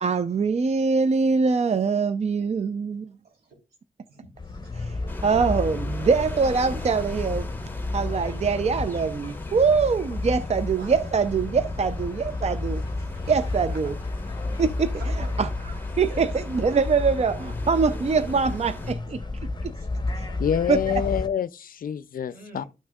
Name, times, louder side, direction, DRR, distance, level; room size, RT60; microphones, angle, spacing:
voice 1, 0.0-3.0 4.8-5.0 5.2-7.5 7.9-12.8 13.3-13.9 14.6-14.9 15.4-15.5 16.0-19.2 19.6-19.7 20.2-20.3 20.7-20.8, right 5 dB, 45° right, 0.5 m, -23 dB
voice 2, 3.2-3.6 4.1-4.9 10.7-11.0 13.1-13.2 13.7-13.9 14.9-15.4 16.0-16.3 19.1-19.2 19.5-20.4 20.9-21.1 22.3-22.7, right 3 dB, 80° right, 3.7 m, -47 dB
sound 1, 4.4-21.3, left 2 dB, 25° left, 1.0 m, -31 dB
sound 2, 5.1-18.9, left 1 dB, 10° left, 1.2 m, -41 dB
voice 3, 20.4-22.6, left 8 dB, 60° left, 0.4 m, -27 dB
12.5 x 6.1 x 2.3 m
cardioid pair, 60°, 16 cm